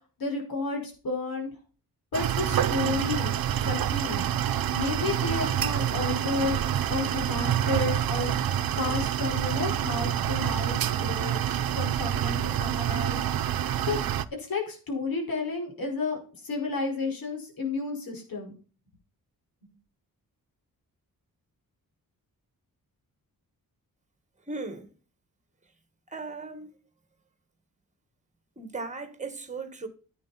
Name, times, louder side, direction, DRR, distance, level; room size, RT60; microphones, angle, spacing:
voice 1, 0.2-1.5 2.1-4.3 4.7-6.6 6.9-8.3 8.8-11.4 11.7-13.2 13.9-14.0 14.4-18.5, left 3 dB, 75° left, 5.2 m, -32 dB
sound 1, 2.1-14.3, right 10 dB, 80° right, 0.8 m, -27 dB
voice 2, 24.5-24.9 26.1-26.7 28.5-29.9, right 3 dB, 20° right, 1.8 m, -37 dB
11.0 x 8.8 x 4.2 m
wide cardioid pair, 150°, 35 cm